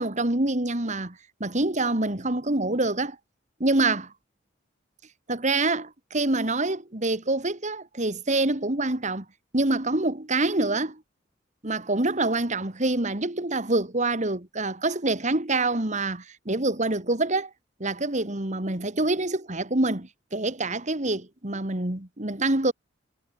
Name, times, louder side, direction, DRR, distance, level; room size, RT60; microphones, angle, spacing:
voice 1, 0.0-3.2 3.6-4.1 5.3-9.2 9.5-11.0 11.6-17.5 17.8-22.7, right 2 dB, 40° right, 2.4 m, -26 dB
head